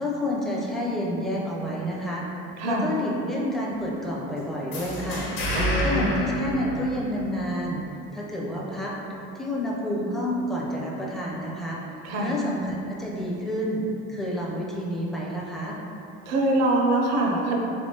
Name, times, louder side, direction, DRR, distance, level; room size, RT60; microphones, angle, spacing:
voice 1, 0.0-2.3 2.6-5.3 5.8-7.8 8.1-8.9 9.3-11.8 12.2-15.8, left 1 dB, ahead, -5 dB, 0.5 m, -29 dB
voice 2, 2.6-2.9 5.5-6.2 12.0-12.4 16.3-17.6, right 2 dB, 45° right, -1 dB, 0.6 m, -24 dB
sound 1, 4.7-7.4, equal, 70° left, 1.0 m, -29 dB
3.4 x 2.9 x 2.8 m, 2.9 s
supercardioid pair, 110°, 35 cm